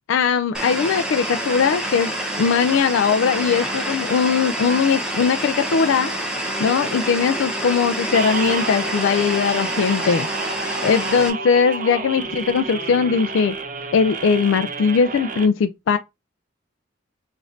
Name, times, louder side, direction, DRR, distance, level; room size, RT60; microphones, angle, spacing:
voice 1, 0.1-2.1 2.4-6.1 6.6-10.3 10.8-13.5 13.9-16.0, left 6 dB, 90° left, 0.3 m, -20 dB
sound 1, 0.5-11.3, right 1 dB, 5° right, 0.7 m, -27 dB
sound 2, 6.5-13.4, right 1 dB, 15° left, 0.4 m, -38 dB
sound 3, 8.1-15.5, right 4 dB, 40° right, 0.6 m, -31 dB
5.1 x 2.6 x 2.5 m
head